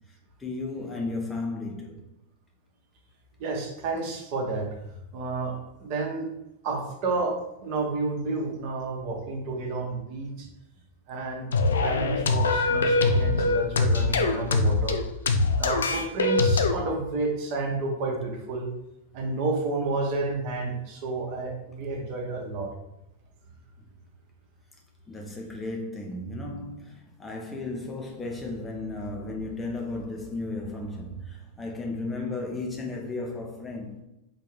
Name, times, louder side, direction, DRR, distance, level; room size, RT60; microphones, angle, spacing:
voice 1, 0.4-2.0 25.1-34.0, left 2 dB, 15° left, 0.6 m, -34 dB
voice 2, 3.4-4.7 5.1-5.5 5.8-6.3 6.6-7.3 7.6-10.5 11.1-11.5 11.8-15.0 15.6-18.7 19.1-22.7, right 3 dB, 45° right, 0.9 m, -30 dB
sound 1, 11.5-16.7, left 3 dB, 70° left, 0.4 m, -23 dB
3.8 x 2.7 x 3.6 m
figure-of-eight pair, 90°, 0 cm